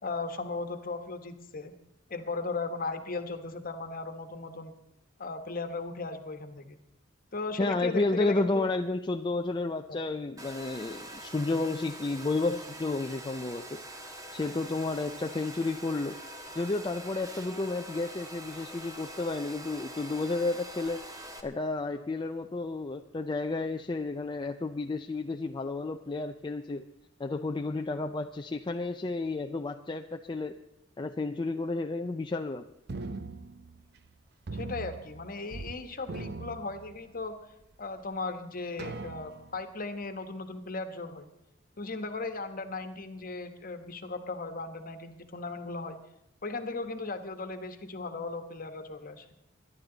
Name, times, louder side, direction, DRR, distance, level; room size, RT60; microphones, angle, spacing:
voice 1, 0.0-1.7 2.1-4.7 5.2-6.8 7.3-8.7 9.9-10.0 34.5-37.4 37.8-41.3 41.8-46.0 46.4-49.2, left 3 dB, 45° left, 8 dB, 1.3 m, -37 dB
voice 2, 7.6-13.8 14.3-16.2 16.5-21.1 21.4-26.9 27.2-30.6 31.0-32.7, left 3 dB, 25° left, 5 dB, 0.4 m, -31 dB
Domestic sounds home sounds, 10.4-21.4, right 1 dB, 20° right, 1.3 m, -44 dB
sound 1, 32.9-34.1 34.5-35.8 36.0-37.3 37.9-38.0 38.8-39.6, right 3 dB, 55° right, 0.7 m, -40 dB
23.0 x 11.0 x 3.9 m, 0.85 s
head